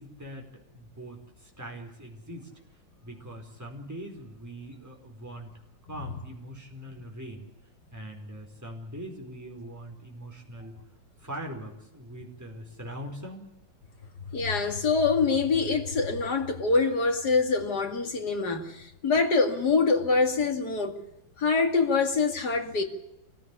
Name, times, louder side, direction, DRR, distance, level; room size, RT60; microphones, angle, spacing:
voice 1, 0.0-2.5 3.0-5.5 5.9-7.5 7.9-10.7 11.2-13.5, right 1 dB, 10° right, 4.6 m, -42 dB
voice 2, 14.3-21.0 21.4-22.8, left 4 dB, 60° left, 2.9 m, -25 dB
24.5 x 16.0 x 8.4 m
omnidirectional pair, 2.0 m